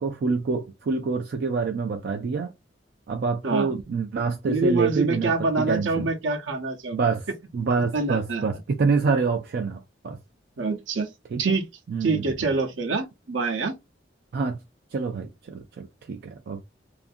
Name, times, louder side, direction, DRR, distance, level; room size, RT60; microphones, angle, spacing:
voice 1, 0.0-2.5 3.1-6.1 6.9-7.3 7.5-10.2 11.3-11.5 11.9-12.2 14.3-14.6 14.9-16.6, right 4 dB, 55° right, 0.3 m, -26 dB
voice 2, 4.4-7.0 7.9-8.4 10.6-11.1 11.4-11.6 12.0-13.8, right 3 dB, 80° right, 0.7 m, -26 dB
2.6 x 2.5 x 2.5 m
head